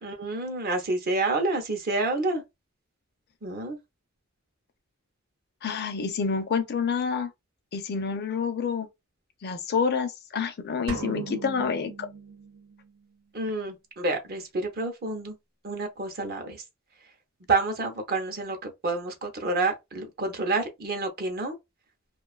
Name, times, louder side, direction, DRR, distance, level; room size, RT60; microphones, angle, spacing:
voice 1, 0.0-2.4 3.4-3.8 13.3-15.4 15.6-16.6 17.5-21.6, right 3 dB, 45° right, 0.7 m, -29 dB
voice 2, 5.6-7.3 7.7-8.9 9.4-12.1, left 5 dB, 50° left, 0.4 m, -28 dB
sound 1, 10.9-12.9, right 4 dB, 85° right, 0.6 m, -38 dB
2.5 x 2.3 x 2.3 m
head